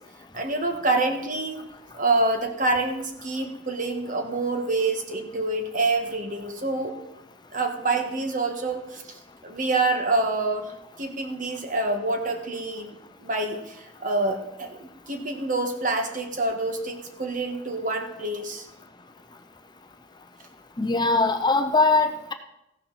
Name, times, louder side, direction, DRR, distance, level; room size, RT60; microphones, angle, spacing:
voice 1, 0.3-1.6 2.0-6.9 7.5-10.7 11.0-18.7, right 2 dB, 45° right, 4 dB, 1.6 m, -27 dB
voice 2, 20.8-22.3, left 3 dB, 20° left, 7 dB, 0.7 m, -21 dB
15.0 x 11.5 x 4.2 m, 0.88 s
head